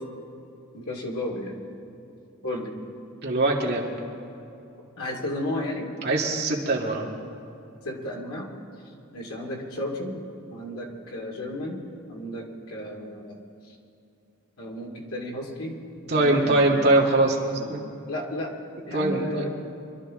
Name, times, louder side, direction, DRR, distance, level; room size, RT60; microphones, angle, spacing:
voice 1, 0.7-1.6 2.4-2.7 5.0-5.9 7.8-8.5 9.1-10.2 10.5-13.4 13.7-13.8 14.6-15.8 16.1-16.8 17.5-17.8 18.0-18.5 18.9-19.5, left 1 dB, 85° left, -1 dB, 2.5 m, -33 dB
voice 2, 3.2-3.8 6.0-7.1 16.1-17.8 18.9-19.5, right 2 dB, 45° right, -2 dB, 2.0 m, -22 dB
25.5 x 12.5 x 3.7 m, 2.8 s
head